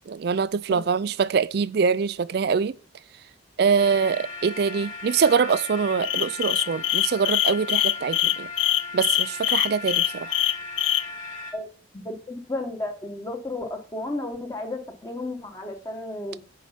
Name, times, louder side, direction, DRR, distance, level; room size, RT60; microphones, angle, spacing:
voice 1, 0.1-2.8 3.6-8.5 8.9-10.4, right 6 dB, 55° right, 0.4 m, -24 dB
sound 1, 3.8-11.5, left 4 dB, 40° left, 1.8 m, -37 dB
sound 2, 6.0-11.0, left 14 dB, 75° left, 0.6 m, -23 dB
voice 2, 11.9-16.4, left 2 dB, 20° left, 1.1 m, -33 dB
9.3 x 4.7 x 5.7 m
head